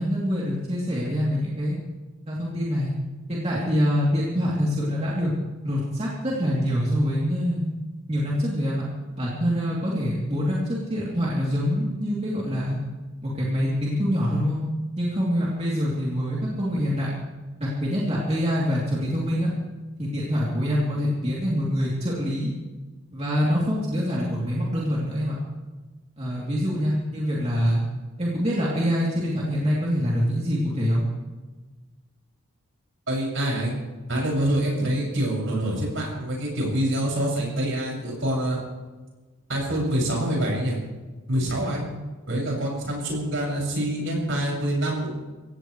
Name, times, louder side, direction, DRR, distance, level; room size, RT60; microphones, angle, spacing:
voice 1, 0.0-1.8 2.3-2.9 3.3-5.3 5.6-7.7 8.1-8.8 9.2-12.8 13.2-14.6 15.0-17.1 17.6-19.5 20.0-22.5 23.1-25.4 26.2-27.8 28.2-31.1, equal, 30° right, -6 dB, 3.1 m, -25 dB
voice 2, 33.1-33.7 34.1-38.6 39.5-40.8 41.3-41.8 42.3-45.1, right 1 dB, 60° right, -2 dB, 6.6 m, -26 dB
25.5 x 17.0 x 3.3 m, 1.3 s
head